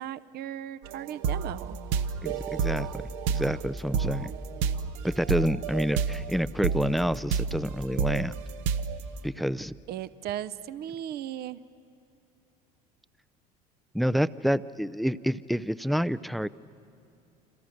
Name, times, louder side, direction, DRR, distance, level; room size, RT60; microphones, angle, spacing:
voice 1, 0.0-1.8 9.9-11.6, right 11 dB, 50° right, 14 dB, 0.8 m, -36 dB
sound 1, 0.8-6.3 6.6-9.0, right 6 dB, 70° right, 1.1 m, -30 dB
voice 2, 2.2-3.0 3.3-4.3 5.0-8.3 9.2-9.7 13.9-16.5, equal, ahead, 17 dB, 0.5 m, -28 dB
29.0 x 26.5 x 6.6 m, 2.6 s
hypercardioid pair, 80°, 20 cm